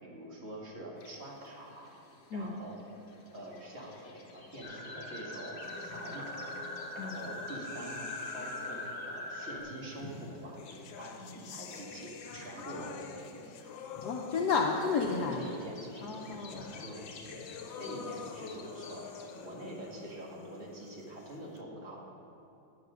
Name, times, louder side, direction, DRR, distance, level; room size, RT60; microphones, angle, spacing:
voice 1, 0.0-1.9 2.3-2.8 3.3-6.5 6.9-8.0 8.3-10.6 11.0-13.3 15.1-17.4 17.8-19.1 19.4-22.0, right 1 dB, 35° right, -3 dB, 1.9 m, -45 dB
sound 1, 1.0-19.5, left 2 dB, 45° left, 0.8 m, -52 dB
sound 2, 4.6-9.6, left 1 dB, 5° left, 1.6 m, -41 dB
sound 3, 5.6-9.1 10.1-21.6, left 7 dB, 85° left, 1.4 m, -48 dB
voice 2, 14.0-15.5 16.0-16.7, left 5 dB, 65° left, 0 dB, 1.1 m, -32 dB
9.4 x 8.0 x 6.1 m, 2.8 s
omnidirectional pair, 2.1 m